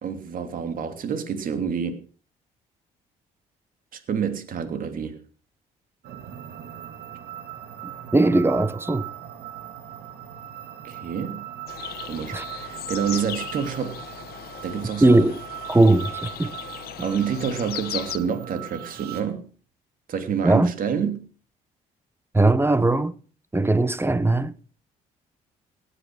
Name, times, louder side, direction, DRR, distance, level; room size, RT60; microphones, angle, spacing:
voice 1, 0.0-2.0 3.9-5.2 10.8-11.4 12.1-14.2 14.6-15.2 17.0-19.5 20.1-21.2, right 7 dB, 60° right, 3.0 m, -28 dB
sound 1, 6.0-19.2, right 12 dB, 75° right, 2.4 m, -39 dB
voice 2, 8.1-9.1 12.3-12.4 15.0-15.4 15.7-16.6 20.4-20.7 22.3-23.1 23.5-24.5, right 2 dB, 15° right, 1.3 m, -19 dB
sound 2, 11.7-18.2, left 13 dB, 75° left, 1.3 m, -37 dB
18.5 x 10.0 x 6.3 m
supercardioid pair, 75°, 16 cm